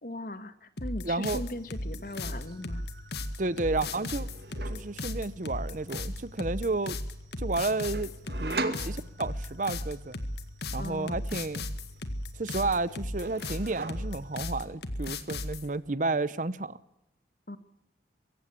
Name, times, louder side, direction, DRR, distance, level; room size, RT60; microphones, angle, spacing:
voice 1, 0.0-2.8 10.8-11.2 17.5-17.6, left 1 dB, 50° left, 1.6 m, -39 dB
sound 1, 0.8-15.7, left 1 dB, 70° left, 1.8 m, -35 dB
voice 2, 1.0-1.4 3.4-4.3 4.7-7.0 7.4-8.1 8.4-10.2 10.7-11.7 12.4-16.8, right 3 dB, 45° right, 0.8 m, -31 dB
sound 2, 1.3-1.5 1.8-2.6 3.6-5.0 7.9-9.6 11.8-12.4 12.7-14.4, right 2 dB, 65° right, 2.2 m, -40 dB
sound 3, 1.5-14.5, left 2 dB, 80° right, 2.0 m, -53 dB
23.5 x 15.5 x 8.3 m
head